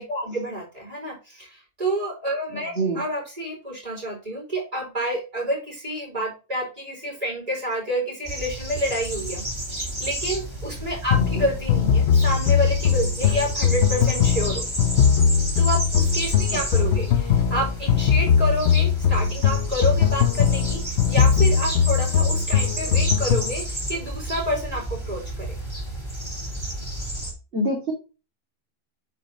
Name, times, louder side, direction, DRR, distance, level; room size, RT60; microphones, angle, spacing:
voice 1, 0.0-9.4 9.8-14.7 15.6-25.6, right 1 dB, 35° right, -1 dB, 5.1 m, -29 dB
sound 1, 8.2-27.3, right 1 dB, 20° right, 4.6 m, -31 dB
sound 2, 11.1-23.6, left 7 dB, 90° left, 0.9 m, -20 dB
voice 2, 27.5-27.9, right 1 dB, 70° right, -4 dB, 2.7 m, -26 dB
8.9 x 4.6 x 4.2 m, 0.31 s
omnidirectional pair, 1.1 m